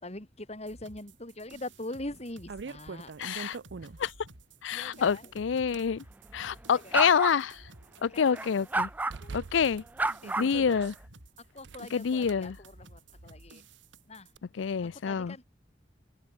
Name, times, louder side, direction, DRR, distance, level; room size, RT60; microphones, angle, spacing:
voice 1, 0.0-3.1 3.7-3.9 4.7-5.3 6.7-7.1 8.1-8.4 9.2-9.4 10.2-10.3 11.4-13.6 14.1-14.3 14.8-15.4, left 1 dB, 35° left, 3.5 m, -43 dB
sound 1, 0.7-14.4, right 2 dB, 85° right, 4.1 m, -54 dB
sound 2, 1.5-1.6 2.1-4.2 4.9-5.9 6.6-8.0 8.3-8.4 9.1-10.9 11.6-12.3, right 4 dB, 65° right, 0.5 m, -44 dB
voice 2, 3.2-3.6 4.0-4.1 4.6-6.0 6.3-7.6 8.0-8.9 9.3-9.8 10.4-10.9 11.9-12.6 14.6-15.3, left 6 dB, 80° left, 0.5 m, -27 dB
sound 3, 6.9-7.4 8.3-9.2 10.0-10.9, right 2 dB, 10° right, 0.3 m, -30 dB
head